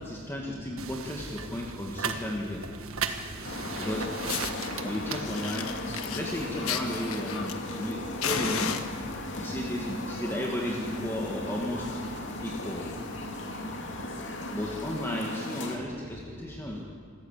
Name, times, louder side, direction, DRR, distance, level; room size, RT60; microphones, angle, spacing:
voice 1, 0.0-2.6 3.8-4.1 4.8-5.7 6.1-8.7 9.3-12.0 12.4-12.9 14.5-16.8, left 1 dB, 10° left, -2 dB, 2.0 m, -34 dB
sound 1, 0.8-6.0, right 5 dB, 75° right, 1.6 m, -37 dB
voice 2, 2.8-3.9 4.5-4.9 6.0-6.2 7.7-8.2 9.1-9.8 12.3-12.4 13.2-14.6 16.2-16.5 16.8-16.9, equal, 20° right, 0 dB, 4.5 m, -46 dB
sound 2, 3.4-15.8, left 1 dB, 55° left, 2.6 m, -37 dB
Fire, 3.8-3.9 4.3-4.7 5.3-7.9 8.2-9.4 10.2-10.5 10.8-10.9 11.3-11.4 11.6-11.8 12.4-12.5 13.4-13.5, left 7 dB, 85° left, 1.4 m, -34 dB
27.0 x 15.0 x 8.5 m, 2.1 s
head